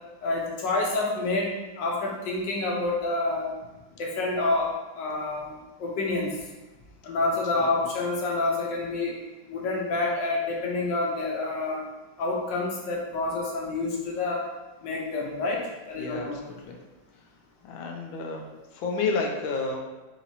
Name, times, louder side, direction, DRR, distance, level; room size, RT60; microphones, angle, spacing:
voice 1, 0.2-1.5 1.8-3.5 4.0-4.7 5.0-5.5 5.8-6.3 7.0-9.1 9.5-11.8 12.2-14.4 14.8-15.6 15.9-16.4, left 2 dB, 70° left, -2 dB, 1.5 m, -28 dB
voice 2, 16.0-16.8 17.6-18.5 18.7-19.8, left 4 dB, 90° left, 1 dB, 1.5 m, -30 dB
4.5 x 3.9 x 2.8 m, 1.2 s
omnidirectional pair, 2.1 m